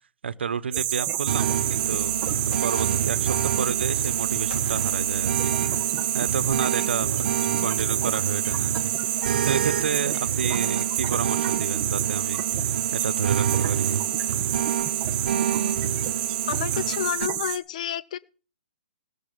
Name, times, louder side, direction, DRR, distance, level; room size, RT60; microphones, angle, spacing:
voice 1, 0.2-5.8 6.1-8.9 9.4-12.4 12.9-13.9, right 6 dB, 80° right, 15 dB, 0.8 m, -30 dB
sound 1, 0.7-17.6, right 11 dB, 25° right, 1.8 m, -28 dB
sound 2, 1.3-17.3, right 9 dB, 55° right, 0.8 m, -28 dB
sound 3, 2.5-3.3 4.5-5.2, left 5 dB, 85° left, 2.6 m, -44 dB
voice 2, 16.5-18.2, left 10 dB, 40° left, 16 dB, 0.7 m, -30 dB
18.5 x 6.9 x 5.2 m, 0.39 s
hypercardioid pair, 160°, 6 cm